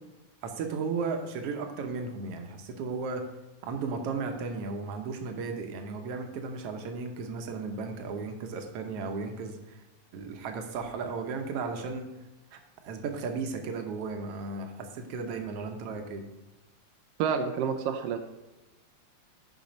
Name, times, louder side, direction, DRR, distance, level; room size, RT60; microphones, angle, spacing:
voice 1, 0.4-3.3 3.6-9.8 10.1-12.1 12.5-12.6 12.8-16.2, right 4 dB, 65° right, 5 dB, 1.7 m, -35 dB
voice 2, 17.2-18.2, right 6 dB, 85° right, 6 dB, 1.3 m, -28 dB
9.1 x 5.4 x 5.3 m, 1.1 s
omnidirectional pair, 3.4 m